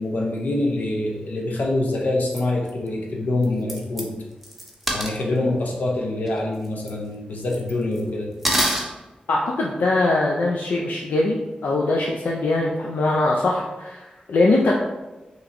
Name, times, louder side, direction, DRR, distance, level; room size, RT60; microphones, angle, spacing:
voice 1, 0.0-4.1 4.9-8.3, left 2 dB, 70° left, 0 dB, 0.9 m, -25 dB
sound 1, 2.3-2.4 2.7-2.8 3.4-3.5 3.7-4.0 4.4-5.2 6.3-6.4 6.6-6.9 7.5-8.0 8.4-8.8, right 1 dB, ahead, 0.8 m, -24 dB
voice 2, 9.3-11.4 11.6-14.7, left 2 dB, 90° left, -2 dB, 0.4 m, -21 dB
5.6 x 3.0 x 2.6 m, 1.1 s
wide cardioid pair, 100°, 3 cm